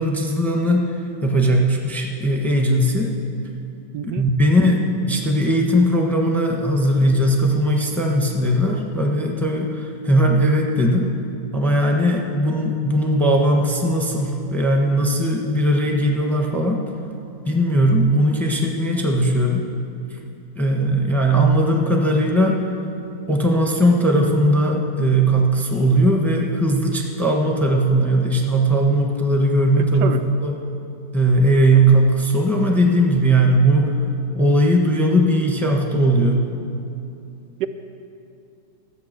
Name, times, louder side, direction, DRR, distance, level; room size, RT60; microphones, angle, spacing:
voice 1, 0.0-3.1 4.0-11.1 11.5-16.8 17.5-19.6 20.5-22.6 23.3-30.5 31.1-34.0 34.3-36.5, right 1 dB, ahead, 1 dB, 0.9 m, -18 dB
voice 2, 3.9-4.3 29.8-30.2 37.6-37.7, right 10 dB, 80° right, 9 dB, 1.2 m, -26 dB
14.0 x 8.3 x 6.7 m, 2.6 s
omnidirectional pair, 1.8 m